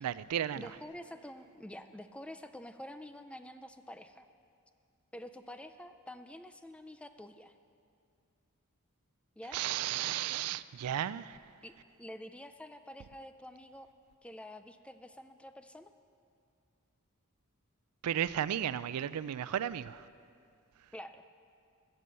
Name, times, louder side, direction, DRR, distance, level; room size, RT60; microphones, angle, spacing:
voice 1, 0.0-0.7 9.5-11.4 18.0-20.1, right 10 dB, 85° right, 0.4 m, -34 dB
voice 2, 0.6-4.3 5.1-7.5 9.4-9.6 11.6-13.9 14.2-15.9 20.9-21.2, left 1 dB, 5° left, 0.4 m, -48 dB
14.0 x 6.9 x 7.6 m
head